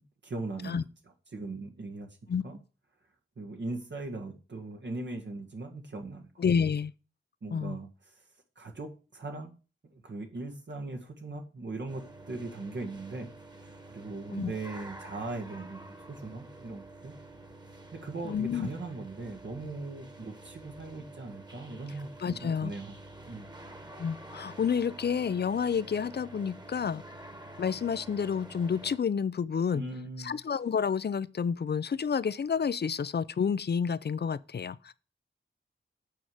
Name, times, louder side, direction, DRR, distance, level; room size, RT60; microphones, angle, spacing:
voice 1, 0.2-0.8 1.3-2.2 2.4-2.6 3.4-6.4 7.4-8.2 8.6-9.5 9.8-13.3 13.9-15.8 16.1-17.1 17.9-23.0 23.3-23.5 29.7-30.3, right 3 dB, 60° right, 1.8 m, -39 dB
voice 2, 6.4-6.9 7.5-7.8 14.3-14.5 18.2-18.7 22.2-22.7 24.0-27.0 27.6-29.8 30.2-34.9, left 6 dB, 55° left, 0.6 m, -29 dB
sound 1, 11.9-29.0, right 2 dB, 20° right, 1.7 m, -48 dB
8.6 x 5.0 x 7.7 m
wide cardioid pair, 95°, 20 cm